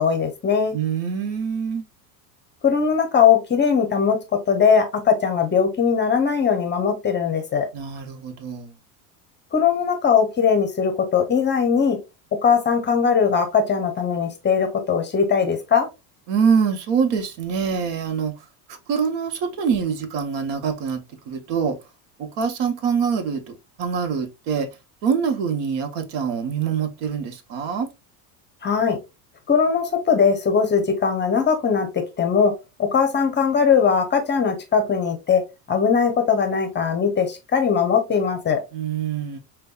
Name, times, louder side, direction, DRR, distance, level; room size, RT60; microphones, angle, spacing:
voice 1, 0.0-0.8 2.6-4.2 4.5-7.7 9.5-12.0 12.4-15.9 28.6-29.0 29.5-32.5 32.8-35.4 35.7-38.6, left 6 dB, 25° left, 0.7 m, -20 dB
voice 2, 0.7-1.9 7.7-8.7 16.3-21.0 21.3-21.8 22.2-24.7 25.0-27.9 38.7-39.4, right 6 dB, 65° right, 0.9 m, -25 dB
5.1 x 2.3 x 2.3 m
supercardioid pair, 115°, 46 cm